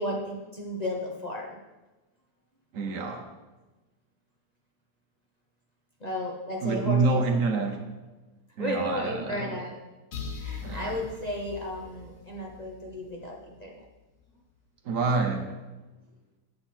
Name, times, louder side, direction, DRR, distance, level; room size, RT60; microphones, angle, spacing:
voice 1, 0.0-1.6 6.0-7.3 8.6-9.8 10.3-13.8, left 1 dB, 30° left, 0.9 m, -34 dB
voice 2, 2.7-3.3 6.6-7.9 8.6-9.6 10.6-11.0 14.8-15.6, right 4 dB, 60° right, 1.1 m, -27 dB
sound 1, 10.1-13.8, left 6 dB, 55° left, 1.2 m, -41 dB
8.0 x 7.8 x 4.3 m
omnidirectional pair, 1.8 m